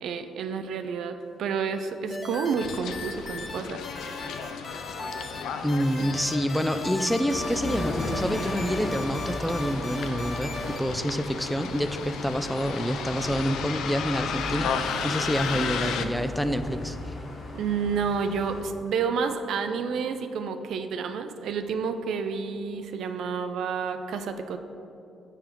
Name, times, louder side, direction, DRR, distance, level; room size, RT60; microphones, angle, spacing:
voice 1, 0.0-4.1 6.0-6.1 15.5-16.2 17.5-24.6, right 5 dB, 75° right, 8 dB, 0.4 m, -30 dB
sound 1, 2.1-3.6 3.8-5.4 5.7-10.8, left 2 dB, 30° left, 0.7 m, -38 dB
Bus, 2.6-16.0, left 7 dB, 80° left, 0.4 m, -35 dB
voice 2, 5.6-17.0, equal, ahead, 9 dB, 0.3 m, -27 dB
sound 2, 7.3-18.6, left 1 dB, 50° left, 1.0 m, -36 dB
7.0 x 3.4 x 5.9 m, 2.7 s
cardioid pair, 90°, 0 cm